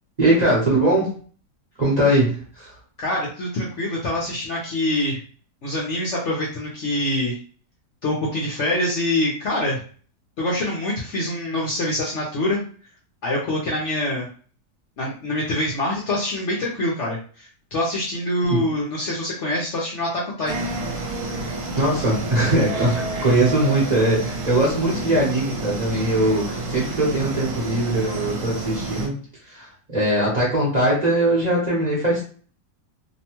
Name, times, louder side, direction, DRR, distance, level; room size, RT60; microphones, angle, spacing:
voice 1, 0.2-1.2 1.8-2.7 18.5-18.6 21.8-29.1 29.4-32.3, right 1 dB, 35° right, -6 dB, 0.8 m, -21 dB
voice 2, 3.0-5.2 5.6-7.4 8.0-9.8 10.4-12.6 13.2-14.3 15.0-20.1 20.4-20.7, left 1 dB, 60° left, -4 dB, 0.8 m, -25 dB
sound 1, 20.5-29.1, right 2 dB, 70° right, 1.2 m, -29 dB
2.9 x 2.1 x 2.9 m, 0.42 s
omnidirectional pair, 1.7 m